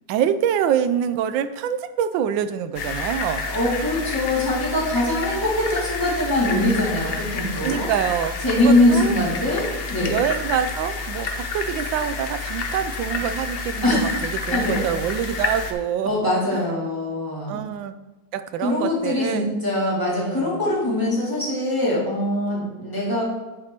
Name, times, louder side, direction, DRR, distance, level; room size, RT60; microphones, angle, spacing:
voice 1, 0.1-3.4 7.6-9.2 10.1-14.1 14.5-16.2 16.5-16.6 17.5-17.9 18.3-19.5 20.2-20.7, right 9 dB, 90° right, 11 dB, 1.3 m, -25 dB
sound 1, 2.7-15.7, left 4 dB, 65° left, 0.6 m, -29 dB
voice 2, 3.4-7.9 8.4-10.2 13.8-14.1 14.5-14.8 16.0-17.6 18.6-23.2, left 1 dB, 10° left, -6 dB, 2.3 m, -22 dB
10.0 x 4.3 x 4.6 m, 1.1 s
omnidirectional pair, 2.0 m